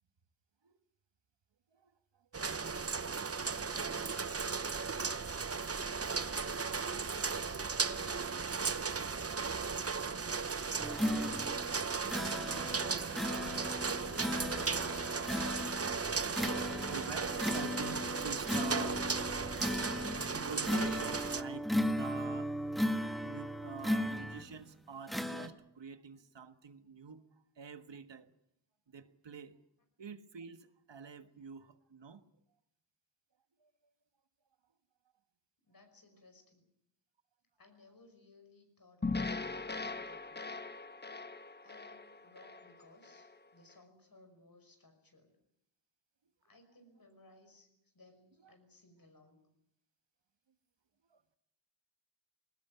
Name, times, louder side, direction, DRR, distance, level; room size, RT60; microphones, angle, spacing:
voice 1, 1.7-2.8 12.2-13.2 14.2-15.6 16.5-19.2 20.3-22.6 23.2-27.2 27.5-28.3 28.9-29.6 30.0-32.3 33.6-33.7 48.4-48.6 51.1-51.2, right 6 dB, 85° right, 11 dB, 1.5 m, -48 dB
sound 1, 2.3-21.4, right 5 dB, 35° right, 0.8 m, -36 dB
voice 2, 3.3-5.5 6.1-8.9 35.6-36.7 37.6-39.4 39.6-40.6 41.6-45.4 46.4-47.7 47.9-49.5, left 2 dB, 55° left, 6 dB, 5.6 m, -61 dB
sound 2, 10.8-24.6 25.1-25.5, left 1 dB, ahead, 1.5 m, -37 dB
sound 3, 39.0-43.3, left 3 dB, 25° left, 1.0 m, -40 dB
21.5 x 18.5 x 9.5 m, 0.77 s
wide cardioid pair, 100°, 42 cm